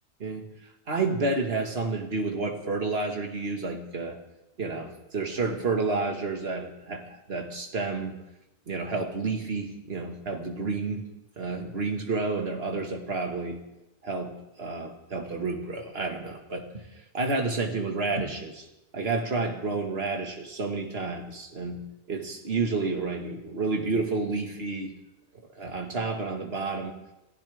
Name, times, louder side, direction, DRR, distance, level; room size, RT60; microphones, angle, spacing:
voice 1, 0.9-4.2 4.6-8.2 8.7-11.1 11.4-13.6 14.0-16.8 17.1-18.7 18.9-24.9 25.6-26.9, right 3 dB, 65° right, 3 dB, 2.0 m, -30 dB
27.5 x 15.0 x 3.5 m, 0.95 s
omnidirectional pair, 1.1 m